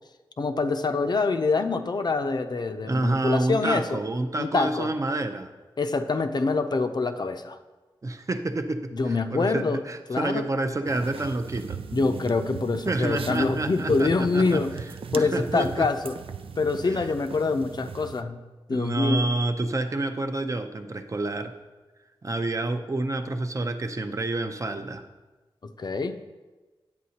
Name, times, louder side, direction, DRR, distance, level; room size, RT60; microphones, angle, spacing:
voice 1, 0.4-4.0 4.4-4.9 5.8-7.6 8.9-9.8 10.1-10.4 11.9-14.7 15.1-16.1 16.6-18.4 18.7-19.3 25.6-26.2, left 3 dB, 50° left, 8 dB, 0.5 m, -25 dB
voice 2, 2.8-5.5 8.0-11.8 12.8-14.6 15.2-15.9 16.8-17.1 18.7-21.5 22.2-25.0, right 2 dB, 35° right, 7 dB, 0.6 m, -28 dB
sound 1, 10.9-18.2, right 6 dB, 85° right, 0.4 m, -38 dB
9.5 x 8.5 x 2.8 m, 1.2 s
wide cardioid pair, 80°, 9 cm